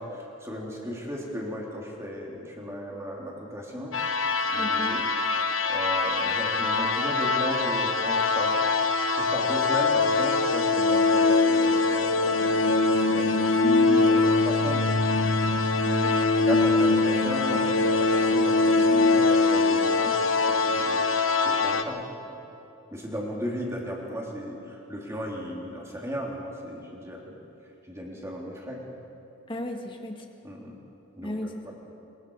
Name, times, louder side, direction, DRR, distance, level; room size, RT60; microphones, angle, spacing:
voice 1, 0.0-4.0 4.5-5.0 5.7-14.9 16.2-22.4 22.9-27.3 27.9-28.9 30.4-30.8 31.2-31.3 31.6-31.7, equal, 15° right, -2 dB, 3.4 m, -35 dB
sound 1, 3.9-21.8, left 3 dB, 75° left, 1.3 m, -23 dB
voice 2, 4.6-5.0 15.8-16.2 29.5-30.3 31.2-31.7, left 1 dB, 25° left, 3 dB, 1.8 m, -34 dB
27.0 x 22.5 x 4.9 m, 2.8 s
head